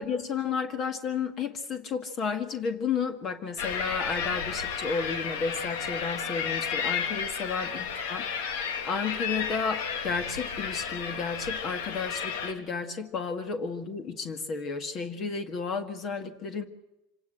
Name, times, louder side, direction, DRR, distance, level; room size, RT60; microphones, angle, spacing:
voice 1, 0.0-8.2 8.6-16.6, left 5 dB, 40° left, 8 dB, 1.8 m, -32 dB
sound 1, 3.6-12.5, left 7 dB, 85° left, 2.9 m, -32 dB
26.5 x 18.0 x 7.7 m, 0.93 s
supercardioid pair, 135°, 0 cm